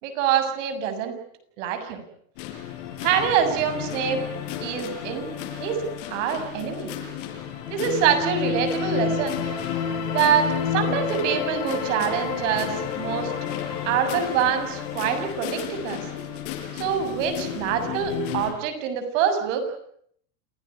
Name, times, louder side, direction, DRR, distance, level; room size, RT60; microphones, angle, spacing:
voice 1, 0.0-1.2 1.6-2.0 3.0-4.2 4.6-5.3 5.6-6.9 7.7-9.4 10.1-13.3 13.9-16.1 16.7-19.6, right 8 dB, 80° right, 7 dB, 7.2 m, -25 dB
sound 1, 2.4-18.5, left 8 dB, 70° left, 7.5 m, -31 dB
28.5 x 18.0 x 9.8 m, 0.67 s
cardioid pair, 160°, 37 cm